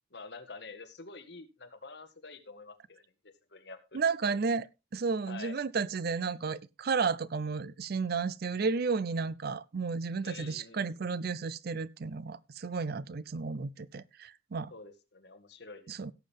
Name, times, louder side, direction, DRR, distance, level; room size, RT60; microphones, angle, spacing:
voice 1, 0.1-4.3 5.3-5.6 10.2-10.9 14.7-15.9, left 4 dB, 60° left, 1.7 m, -48 dB
voice 2, 3.9-4.7 4.9-14.7 15.9-16.1, right 5 dB, 55° right, 0.5 m, -32 dB
17.0 x 7.4 x 3.5 m
head